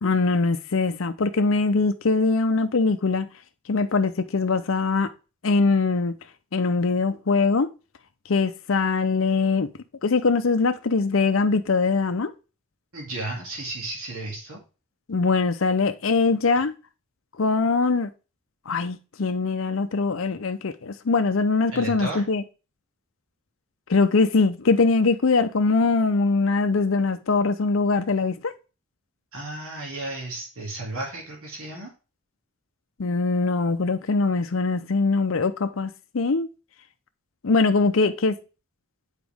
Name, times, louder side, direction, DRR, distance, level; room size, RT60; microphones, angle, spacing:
voice 1, 0.0-3.3 3.7-5.1 5.4-6.2 6.5-7.7 8.3-9.7 10.0-12.3 15.1-16.7 17.4-18.1 18.7-22.4 23.9-28.5 33.0-36.5 37.4-38.4, left 4 dB, 70° left, 0.6 m, -22 dB
voice 2, 12.9-14.6 21.7-22.2 29.3-31.9, right 2 dB, 90° right, 2.4 m, -33 dB
8.2 x 4.9 x 3.5 m
head